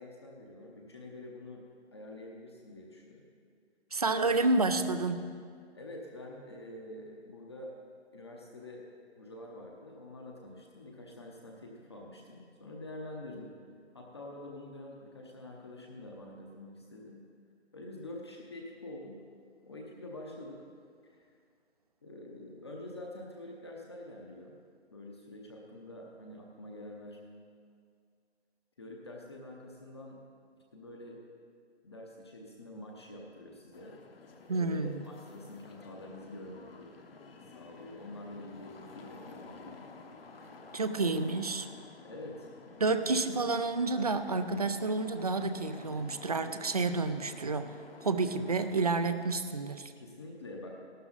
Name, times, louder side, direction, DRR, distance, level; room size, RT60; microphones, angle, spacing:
voice 1, 0.0-1.6 1.9-3.2 4.1-4.3 5.7-7.7 8.1-8.9 9.2-13.6 13.9-17.2 17.7-19.2 19.6-20.7 21.1-21.2 22.0-24.6 24.9-27.2 28.8-30.2 30.7-31.2 31.8-34.0 34.4-36.9 37.5-39.8 42.0-42.5 49.9-50.8, left 1 dB, 25° left, -1 dB, 0.7 m, -46 dB
voice 2, 3.9-5.3 34.5-35.0 40.7-41.7 42.8-47.7 48.0-49.9, right 3 dB, 35° right, 10 dB, 0.4 m, -30 dB
sound 1, 33.7-49.3, left 4 dB, 55° left, 1.2 m, -52 dB
13.5 x 12.0 x 3.9 m, 2.2 s
hypercardioid pair, 170°, 34 cm